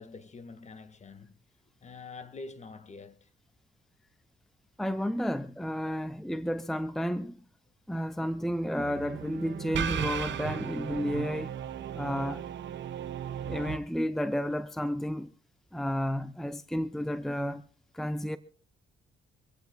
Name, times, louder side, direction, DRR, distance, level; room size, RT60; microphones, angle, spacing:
voice 1, 0.0-1.4 1.8-3.3, left 3 dB, 35° left, 1.6 m, -46 dB
voice 2, 4.8-7.4 7.9-11.5 11.9-12.4 13.5-15.3 15.7-17.6 17.9-18.4, equal, ahead, 0.7 m, -32 dB
sound 1, 8.8-13.8, right 9 dB, 65° right, 1.2 m, -36 dB
24.5 x 16.0 x 2.3 m
cardioid pair, 90°, 20 cm